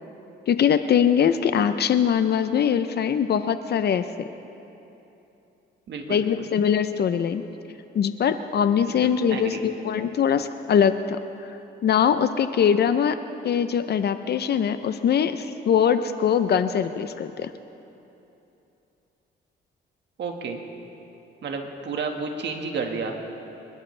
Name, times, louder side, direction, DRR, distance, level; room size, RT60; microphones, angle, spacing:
voice 1, 0.5-4.3 6.1-7.4 7.9-11.2 11.8-13.2 13.4-17.5, left 8 dB, 55° left, 10 dB, 0.7 m, -22 dB
voice 2, 5.9-6.3 8.8-9.7 20.2-20.6 21.4-23.2, right 4 dB, 60° right, 3 dB, 1.8 m, -31 dB
27.5 x 12.0 x 3.4 m, 2.9 s
cardioid pair, 90°, 20 cm